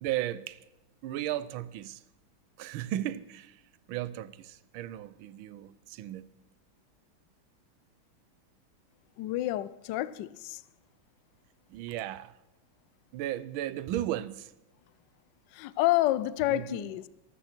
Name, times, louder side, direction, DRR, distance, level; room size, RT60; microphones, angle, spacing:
voice 1, 0.0-0.6 1.0-2.0 2.6-3.6 3.9-6.3 11.7-12.4 13.1-14.5 16.5-16.9, right 13 dB, 75° right, 1.4 m, -35 dB
voice 2, 9.2-10.6 15.5-17.1, left 15 dB, 70° left, 1.1 m, -29 dB
25.0 x 9.3 x 4.4 m
omnidirectional pair, 2.3 m